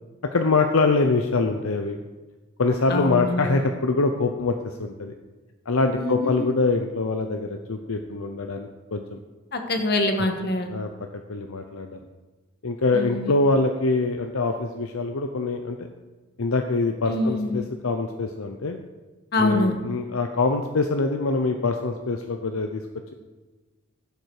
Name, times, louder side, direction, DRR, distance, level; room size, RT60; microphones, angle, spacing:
voice 1, 0.3-2.0 2.6-5.1 5.7-9.2 10.7-10.9 11.3-12.0 12.6-15.8 16.4-18.8 19.4-22.8, left 3 dB, 65° left, 5 dB, 0.7 m, -24 dB
voice 2, 2.9-3.6 6.0-6.5 9.5-10.7 12.9-13.3 17.0-17.7 19.3-19.8, left 2 dB, 45° left, 5 dB, 1.5 m, -25 dB
15.0 x 7.9 x 4.8 m, 1.2 s
head